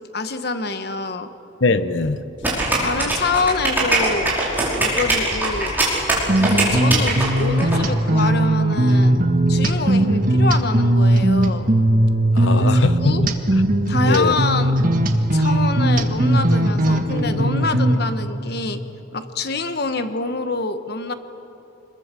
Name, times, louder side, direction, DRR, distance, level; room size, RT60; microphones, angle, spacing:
voice 1, 0.1-1.3 2.8-4.4 4.8-5.8 6.4-9.2 9.5-11.7 12.4-13.2 13.9-14.7 15.3-18.8 19.1-21.1, left 3 dB, 55° left, 9 dB, 1.2 m, -26 dB
voice 2, 1.6-2.2 12.3-13.6 14.0-14.4, left 3 dB, 70° left, 12 dB, 1.0 m, -21 dB
sound 1, 2.4-7.8, right 2 dB, 10° right, 5.1 m, -21 dB
sound 2, 6.3-18.0, right 1 dB, 45° right, 1.6 m, -18 dB
26.0 x 21.5 x 7.5 m, 3.0 s
head